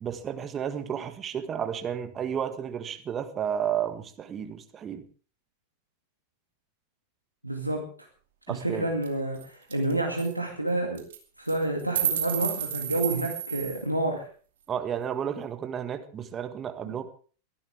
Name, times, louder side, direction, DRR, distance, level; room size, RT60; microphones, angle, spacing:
voice 1, 0.0-5.0 8.5-8.9 14.7-17.0, right 8 dB, 25° right, 9 dB, 1.7 m, -32 dB
voice 2, 7.4-7.9 8.5-11.1 11.4-14.3, right 2 dB, 90° right, 1 dB, 2.2 m, -29 dB
sound 1, 9.0-9.1 9.4-9.5 9.7-9.9 10.2-10.3 11.0-11.2 11.5-13.8, right 9 dB, 60° right, 2.6 m, -30 dB
23.0 x 12.0 x 3.5 m, 0.40 s
figure-of-eight pair, 90°, 0 cm